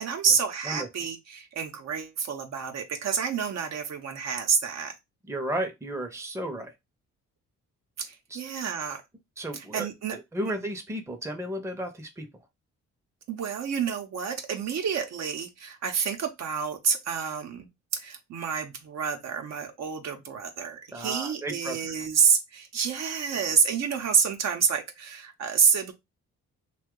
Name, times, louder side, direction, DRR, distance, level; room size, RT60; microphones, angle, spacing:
voice 1, 0.0-4.9 8.0-9.0 9.5-10.2 10.4-10.5 13.3-17.7 17.9-25.9, right 6 dB, 60° right, 0.7 m, -28 dB
voice 2, 5.3-6.7 8.3-8.4 9.4-9.9 10.3-12.3 20.9-21.9, right 1 dB, 10° right, 0.7 m, -33 dB
2.6 x 2.3 x 3.6 m
cardioid pair, 90°, 30 cm